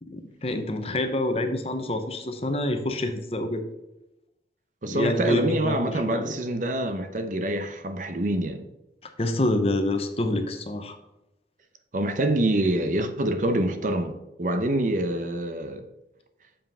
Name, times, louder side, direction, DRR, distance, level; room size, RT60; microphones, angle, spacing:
voice 1, 0.0-3.6 4.8-6.3 9.2-11.0, left 1 dB, 35° left, 0.8 m, -27 dB
voice 2, 4.8-8.6 11.9-15.9, right 1 dB, 45° right, 0.8 m, -26 dB
7.1 x 5.8 x 5.5 m
head